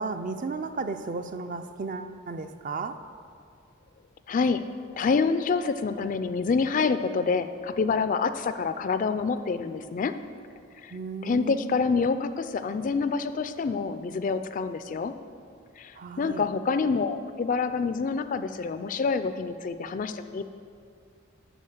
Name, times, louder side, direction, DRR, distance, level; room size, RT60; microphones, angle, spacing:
voice 1, 0.0-3.0 10.9-11.7 16.0-16.5, right 4 dB, 40° right, 9 dB, 0.4 m, -34 dB
voice 2, 4.3-4.6 5.0-10.1 10.8-10.9 11.2-15.1 15.8-15.9 16.2-20.4, left 5 dB, 40° left, 11 dB, 0.3 m, -27 dB
11.0 x 4.5 x 6.6 m, 2.3 s
head